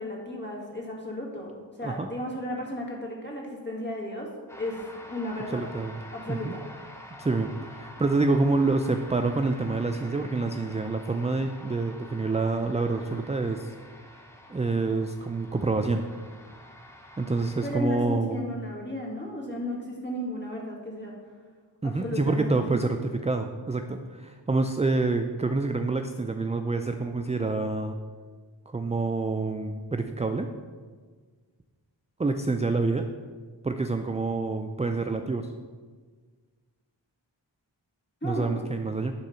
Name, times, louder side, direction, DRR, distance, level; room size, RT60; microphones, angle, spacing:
voice 1, 0.0-1.5 1.8-4.3 4.6-5.6 6.1-6.6 17.6-21.1 21.8-22.8 38.2-38.5, left 1 dB, 25° left, -2 dB, 1.9 m, -34 dB
sound 1, 4.5-17.7, left 1 dB, 5° left, 0.9 m, -47 dB
voice 2, 5.5-6.0 6.3-6.5 7.1-13.7 14.5-16.0 17.2-18.5 21.8-28.0 28.7-30.5 32.2-33.1 33.6-35.5 38.2-39.1, right 3 dB, 15° right, 6 dB, 0.3 m, -27 dB
9.9 x 3.7 x 5.6 m, 1.5 s
wide cardioid pair, 55°, 46 cm